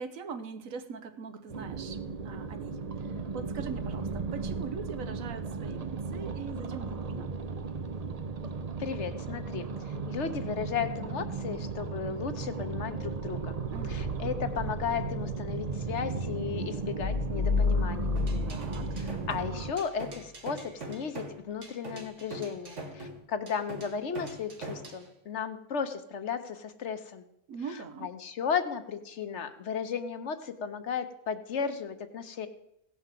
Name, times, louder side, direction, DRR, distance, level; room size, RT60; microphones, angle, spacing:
voice 1, 0.0-7.3 13.7-14.0 18.5-18.9 27.5-28.1, right 5 dB, 80° right, 11 dB, 1.3 m, -42 dB
sound 1, 1.5-19.7, right 4 dB, 40° right, 0.6 m, -35 dB
voice 2, 8.8-13.6 13.8-18.6 18.9-27.2 28.0-32.5, left 7 dB, 60° left, 9 dB, 1.2 m, -35 dB
sound 2, 17.0-19.7, left 4 dB, 80° left, 1.8 m, -30 dB
sound 3, 18.2-25.0, right 2 dB, 60° right, 1.9 m, -42 dB
16.0 x 5.8 x 7.5 m, 0.81 s
omnidirectional pair, 1.4 m